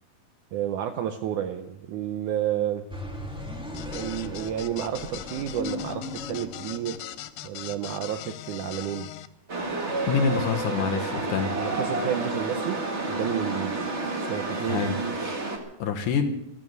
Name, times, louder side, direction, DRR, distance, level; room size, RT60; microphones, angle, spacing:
voice 1, 0.5-2.9 3.9-7.0 7.4-9.1 11.6-13.8 14.3-15.2, right 10 dB, 80° right, 8 dB, 1.8 m, -31 dB
sound 1, 2.9-7.4, left 1 dB, 5° right, 0.6 m, -38 dB
sound 2, 3.7-9.3, left 14 dB, 80° left, 2.6 m, -40 dB
Chatter / Subway metro underground, 9.5-15.6, right 2 dB, 40° right, 0.9 m, -30 dB
voice 2, 10.1-11.5 14.7-15.0 15.8-16.3, left 6 dB, 65° left, 5 dB, 2.3 m, -26 dB
14.0 x 12.5 x 8.0 m, 0.82 s
omnidirectional pair, 4.5 m